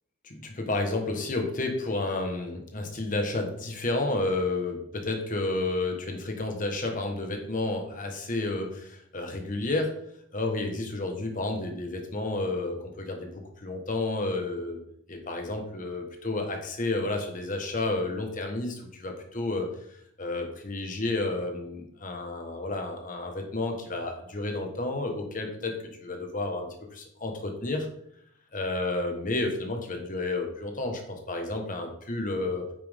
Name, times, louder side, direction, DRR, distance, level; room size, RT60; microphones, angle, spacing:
voice 1, 0.2-9.9 10.3-14.8 15.1-19.7 20.2-25.7 26.0-27.9 28.5-32.7, left 2 dB, 40° left, 3 dB, 1.4 m, -31 dB
8.8 x 5.9 x 3.6 m, 0.72 s
head